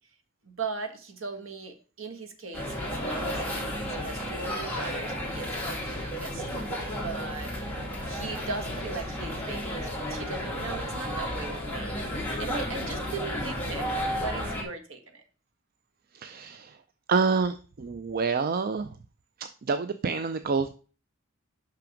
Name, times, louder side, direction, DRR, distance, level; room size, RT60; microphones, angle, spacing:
voice 1, 0.4-7.5 8.1-15.2, right 3 dB, 65° right, 6 dB, 1.4 m, -39 dB
sound 1, 2.5-14.6, equal, 10° left, 2.1 m, -33 dB
voice 2, 16.1-16.8 17.1-19.0 19.4-20.7, right 5 dB, 45° right, 10 dB, 0.4 m, -28 dB
5.9 x 5.9 x 5.0 m, 0.37 s
head